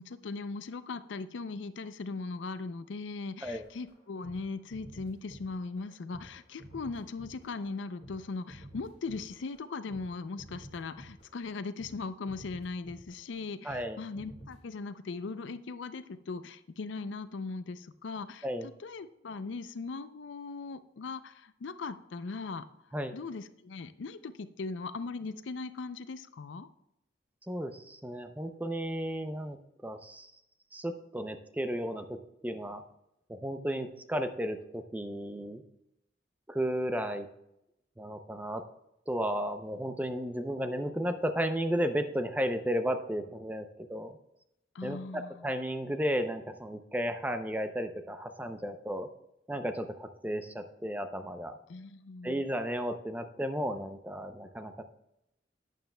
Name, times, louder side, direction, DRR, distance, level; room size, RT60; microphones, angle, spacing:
voice 1, 0.0-18.5 18.8-22.6 23.1-26.7 44.7-45.5 51.7-52.4, left 4 dB, 80° left, 12 dB, 0.5 m, -39 dB
sound 1, 3.4-10.1 10.4-11.5 11.8-12.0 12.3-13.4 13.7-13.9 14.1-14.6, right 1 dB, 35° left, 2.5 m, -51 dB
voice 2, 13.6-14.0 18.4-18.7 22.9-23.2 27.5-29.6 29.8-30.3 30.7-32.2 32.4-32.8 33.3-35.6 36.5-37.3 38.0-38.6 39.1-44.2 44.8-49.1 49.5-51.6 52.2-54.8, equal, 10° right, 8 dB, 0.5 m, -34 dB
11.5 x 9.2 x 2.2 m, 0.84 s
head